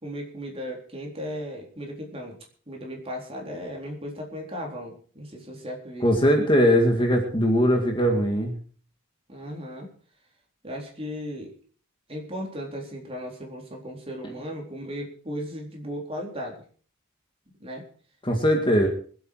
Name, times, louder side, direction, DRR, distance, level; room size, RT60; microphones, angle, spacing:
voice 1, 0.0-2.4 2.7-6.4 9.3-9.9 10.6-11.5 12.1-16.6 17.6-17.8, equal, 25° right, 0 dB, 3.9 m, -36 dB
voice 2, 6.0-8.5 18.2-18.9, equal, 25° left, 4 dB, 2.1 m, -20 dB
24.0 x 8.6 x 4.7 m, 0.43 s
head